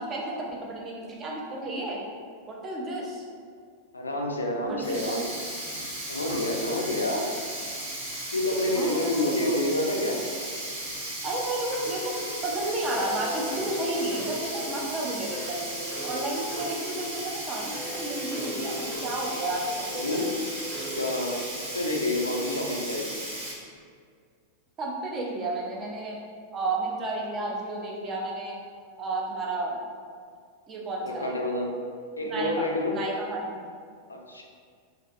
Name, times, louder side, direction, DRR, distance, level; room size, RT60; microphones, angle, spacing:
voice 1, 0.0-2.0 2.5-3.2 4.6-5.2 8.7-9.6 11.2-12.1 12.4-15.6 16.0-20.2 24.8-26.2 26.5-28.6 29.0-29.8 30.7-31.5 32.2-33.7, right 2 dB, 25° right, -3 dB, 0.5 m, -32 dB
voice 2, 3.9-5.2 6.1-7.3 8.3-10.2 19.9-20.4 20.8-23.2 31.0-31.7 32.2-33.0 34.1-34.4, left 1 dB, 80° left, 0 dB, 0.3 m, -28 dB
Sink (filling or washing), 4.8-23.5, right 1 dB, 65° right, 0.8 m, -36 dB
sound 1, 11.7-21.3, equal, 10° left, 0.7 m, -39 dB
2.5 x 2.5 x 2.3 m, 2.1 s
figure-of-eight pair, 90°, 0 cm